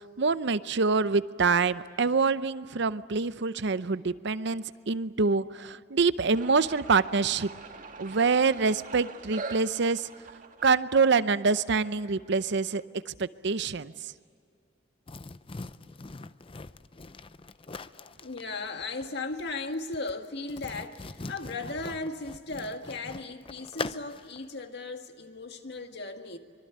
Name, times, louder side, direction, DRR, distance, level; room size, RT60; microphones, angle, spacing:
voice 1, 0.0-7.5 8.0-10.1 10.6-14.1, right 4 dB, 65° right, 0.7 m, -26 dB
sound 1, 6.3-12.9, right 3 dB, 45° right, 1.7 m, -44 dB
sound 2, 15.1-24.4, left 3 dB, 30° left, 0.6 m, -42 dB
voice 2, 17.9-26.4, left 3 dB, 60° left, 1.9 m, -36 dB
25.0 x 23.5 x 9.4 m
head